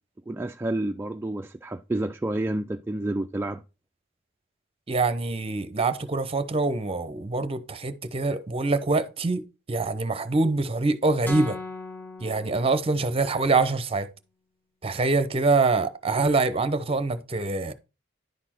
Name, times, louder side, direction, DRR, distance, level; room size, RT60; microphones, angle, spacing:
voice 1, 0.3-3.6, right 1 dB, 10° right, 0.3 m, -29 dB
voice 2, 4.9-9.4 9.7-11.6 12.2-14.1 14.8-17.7, right 3 dB, 30° right, 0.7 m, -25 dB
sound 1, 11.3-13.4, left 2 dB, 10° left, 1.2 m, -38 dB
10.5 x 4.2 x 4.4 m
head